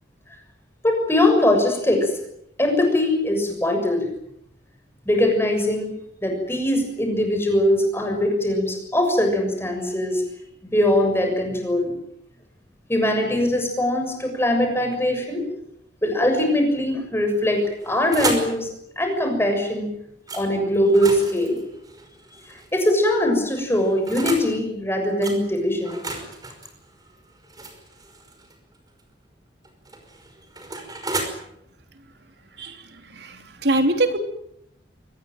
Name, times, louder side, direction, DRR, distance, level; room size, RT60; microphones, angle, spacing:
voice 1, 0.8-2.1 2.6-4.1 5.1-5.9 6.2-10.2 10.7-11.9 12.9-15.4 16.0-18.7 19.0-19.9 20.3-21.6 22.7-26.0, left 1 dB, 15° left, 4 dB, 6.9 m, -21 dB
sound 1, 17.6-18.6 20.3-20.4 20.8-22.7 23.5-24.5 25.2-25.4 25.8-28.5 29.6-31.3, right 3 dB, 20° right, 5.3 m, -32 dB
voice 2, 33.1-34.2, right 1 dB, 70° right, 6 dB, 3.3 m, -23 dB
24.0 x 20.5 x 9.2 m, 0.77 s
head